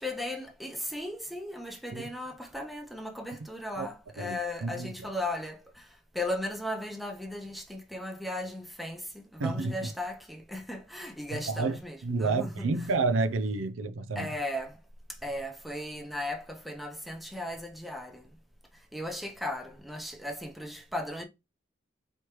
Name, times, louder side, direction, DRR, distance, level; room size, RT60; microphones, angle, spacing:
voice 1, 0.0-12.9 14.1-14.8 15.1-18.3 18.7-21.2, left 1 dB, ahead, 0.7 m, -37 dB
voice 2, 4.2-4.9 9.4-9.7 11.3-11.8 12.0-14.3, right 3 dB, 85° right, 0.5 m, -29 dB
4.6 x 3.3 x 3.0 m
head